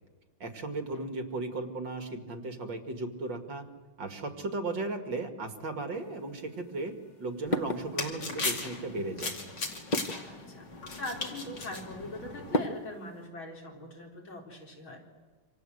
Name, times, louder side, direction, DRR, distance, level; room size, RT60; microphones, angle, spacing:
voice 1, 0.4-3.7 4.0-9.3, right 2 dB, 65° right, 7 dB, 2.8 m, -36 dB
sound 1, 5.9-13.3, left 1 dB, 30° left, 1.0 m, -38 dB
sound 2, 7.5-12.6, left 3 dB, 60° left, 3.3 m, -38 dB
voice 2, 10.2-10.7 11.0-15.1, left 2 dB, 75° left, 1 dB, 4.9 m, -42 dB
27.5 x 26.5 x 8.0 m, 1.3 s
omnidirectional pair, 2.2 m